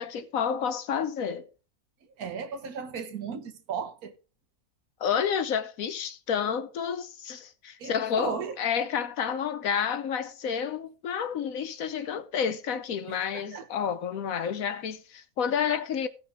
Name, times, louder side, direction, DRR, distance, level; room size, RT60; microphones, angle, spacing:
voice 1, 0.0-1.5 5.0-16.1, left 7 dB, 70° left, 1.3 m, -30 dB
voice 2, 2.2-4.1 7.8-8.6 13.1-13.7, right 6 dB, 80° right, 1.6 m, -36 dB
16.5 x 6.0 x 3.5 m
omnidirectional pair, 1.6 m